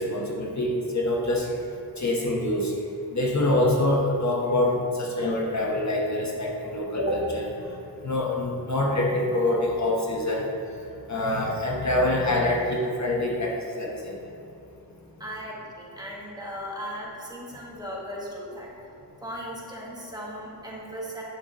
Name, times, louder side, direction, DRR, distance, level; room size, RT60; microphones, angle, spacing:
voice 1, 0.0-1.5 2.0-2.7 3.1-7.5 8.0-10.4 11.1-14.2, left 1 dB, 45° left, -2 dB, 1.1 m, -25 dB
voice 2, 15.2-18.7 19.2-21.2, equal, 10° right, -5 dB, 1.5 m, -37 dB
9.2 x 7.1 x 3.0 m, 2.7 s
wide cardioid pair, 110°, 41 cm